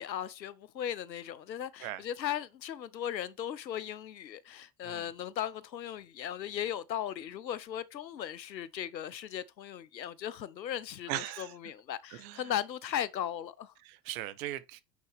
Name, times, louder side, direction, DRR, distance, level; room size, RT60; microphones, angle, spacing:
voice 1, 0.0-13.7, left 10 dB, 90° left, 0.6 m, -37 dB
voice 2, 11.1-11.5 12.2-12.4 13.8-14.8, right 14 dB, 55° right, 0.9 m, -38 dB
9.4 x 4.0 x 3.3 m
figure-of-eight pair, 80°, 50 cm